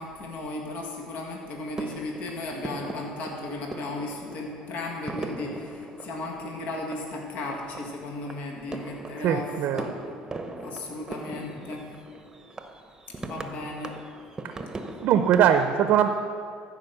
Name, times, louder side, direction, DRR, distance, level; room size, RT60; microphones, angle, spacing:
voice 1, 0.0-9.9 10.6-11.9 13.2-14.0, left 2 dB, 55° left, 0 dB, 1.8 m, -35 dB
sound 1, 0.6-1.2 1.7-15.5, right 2 dB, 20° right, 0.9 m, -40 dB
voice 2, 9.2-9.9 14.4-14.5 15.0-16.1, right 9 dB, 60° right, 8 dB, 0.6 m, -21 dB
14.0 x 5.1 x 6.7 m, 2.2 s
supercardioid pair, 90°, 3 cm